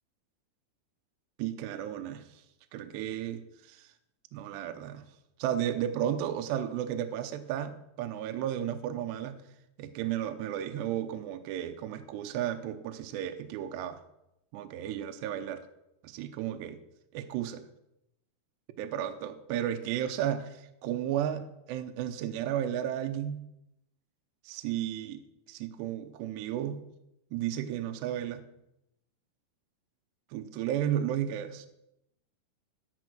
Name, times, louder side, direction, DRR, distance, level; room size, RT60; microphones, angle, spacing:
voice 1, 1.4-2.4 2.7-3.9 4.3-5.0 5.4-9.4 9.8-14.0 14.5-15.6 16.0-16.8 17.1-17.7 18.8-23.5 24.4-25.2 25.5-26.8 27.3-28.4 30.3-31.7, right 10 dB, 80° right, 7 dB, 2.5 m, -33 dB
12.5 x 10.5 x 6.3 m, 0.84 s
omnidirectional pair, 5.7 m